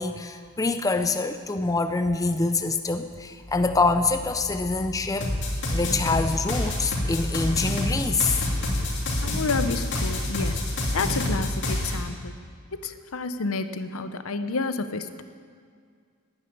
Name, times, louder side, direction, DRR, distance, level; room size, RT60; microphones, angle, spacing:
voice 1, 0.0-5.3 5.7-8.4, left 3 dB, 15° left, 7 dB, 0.4 m, -25 dB
sound 1, 5.2-12.0, left 1 dB, 55° left, 2.9 m, -27 dB
voice 2, 9.1-12.3 12.7-15.2, left 4 dB, 70° left, 11 dB, 0.8 m, -30 dB
11.5 x 9.8 x 10.0 m, 2.2 s
head